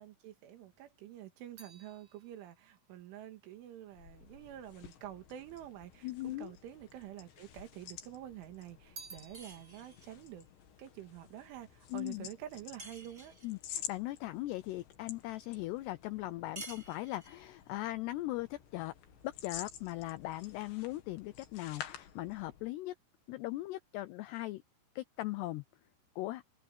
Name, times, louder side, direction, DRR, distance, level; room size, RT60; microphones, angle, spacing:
voice 1, 0.0-10.5 10.8-13.4, right 12 dB, 80° right, 4.4 m, -48 dB
sound 1, 0.6-5.0 5.8-6.6 6.9-8.0 8.4-11.9 12.2-12.7, right 4 dB, 35° right, 8.9 m, -57 dB
sound 2, 3.9-22.8, left 10 dB, 70° left, 4.1 m, -51 dB
voice 2, 6.0-6.5 11.9-12.3 13.4-18.9 19.2-22.9 23.3-24.6 25.0-25.6 26.2-26.4, left 17 dB, 85° left, 2.4 m, -39 dB
sound 3, 9.3-10.2 12.8-13.6 16.6-17.5, right 3 dB, 15° right, 1.5 m, -50 dB
omnidirectional pair, 5.5 m